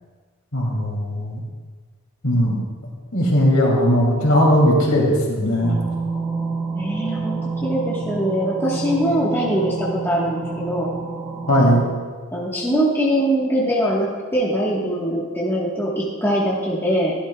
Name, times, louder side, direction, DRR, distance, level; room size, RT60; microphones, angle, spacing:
voice 1, 0.5-1.4 2.2-2.6 3.1-5.7 11.5-11.8, equal, 65° left, -2 dB, 2.7 m, -18 dB
sound 1, 5.6-11.8, right 4 dB, 20° right, 1.7 m, -28 dB
voice 2, 6.7-10.9 12.3-17.1, equal, 10° left, -6 dB, 1.3 m, -22 dB
14.5 x 11.5 x 2.3 m, 1.5 s
head